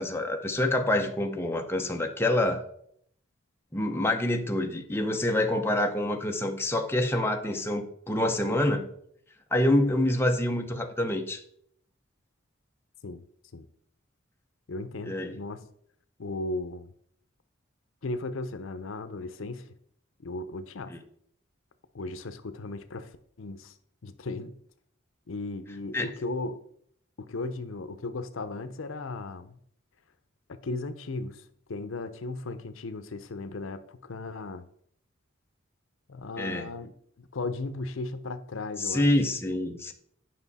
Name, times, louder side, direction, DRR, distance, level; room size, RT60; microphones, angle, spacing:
voice 1, 0.0-2.6 3.7-8.9 9.5-11.4 15.0-15.4 20.9-21.0 25.9-26.1 36.4-36.7 38.8-39.9, left 1 dB, 10° left, 0.7 m, -26 dB
voice 2, 14.7-15.7 16.2-16.9 18.0-19.6 20.2-20.9 21.9-23.1 23.4-23.7 24.0-24.5 25.3-26.6 27.2-29.6 30.5-31.4 31.7-34.6 36.1-36.9 37.2-39.1, left 2 dB, 75° left, 0.6 m, -36 dB
9.5 x 5.6 x 4.1 m
head